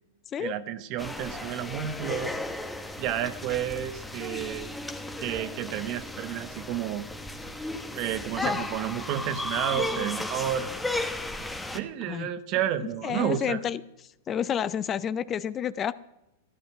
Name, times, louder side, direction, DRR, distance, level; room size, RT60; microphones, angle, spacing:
voice 1, 0.4-2.3 3.0-4.7 5.2-7.0 7.9-10.7 11.7-13.6, right 11 dB, 45° right, 12 dB, 1.1 m, -31 dB
sound 1, 1.0-11.8, left 1 dB, 5° left, 1.2 m, -35 dB
voice 2, 13.0-13.8 14.3-15.9, left 9 dB, 30° left, 17 dB, 0.5 m, -29 dB
14.0 x 11.0 x 6.0 m, 0.89 s
hypercardioid pair, 115°, 0 cm